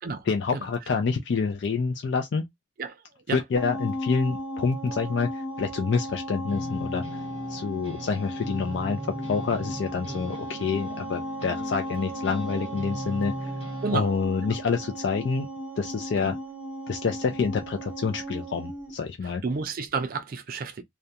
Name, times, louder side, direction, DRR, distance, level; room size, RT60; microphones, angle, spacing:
voice 1, 0.2-2.4 3.3-7.2 7.5-13.6 13.9-15.5 15.8-16.3 16.9-19.4, left 5 dB, 65° left, 0.4 m, -27 dB
sound 1, 3.6-18.9, right 1 dB, 5° right, 0.7 m, -36 dB
sound 2, 6.5-14.0, left 1 dB, 30° left, 1.1 m, -38 dB
voice 2, 19.2-20.8, right 4 dB, 50° right, 0.4 m, -31 dB
2.3 x 2.2 x 2.7 m
head